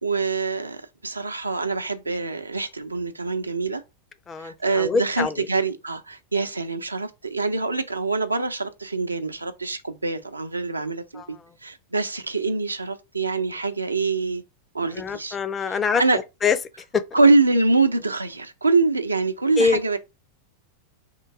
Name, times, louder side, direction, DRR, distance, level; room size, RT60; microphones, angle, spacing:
voice 1, 0.0-3.8 4.4-14.4 14.7-15.4 15.7-16.2 17.1-20.0, right 3 dB, 80° right, 0.5 m, -24 dB
voice 2, 4.3-5.5 11.1-11.5 14.9-16.6 16.9-17.0 19.6-19.8, left 5 dB, 20° left, 0.5 m, -25 dB
3.7 x 2.5 x 4.6 m
figure-of-eight pair, 90°, 0 cm